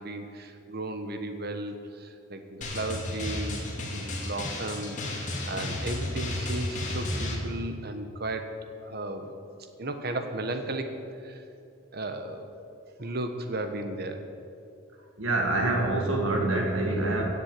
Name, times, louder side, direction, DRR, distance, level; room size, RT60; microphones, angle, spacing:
voice 1, 0.0-3.6 3.9-8.5 8.8-9.4 9.8-10.9 11.2-11.4 11.9-12.5 13.0-14.2, right 2 dB, 50° right, 7 dB, 1.3 m, -35 dB
Drum, 2.6-7.4, left 1 dB, 40° left, 2.4 m, -33 dB
voice 2, 15.2-17.2, right 2 dB, 85° right, 0 dB, 2.3 m, -26 dB
16.0 x 7.5 x 8.3 m, 2.6 s
head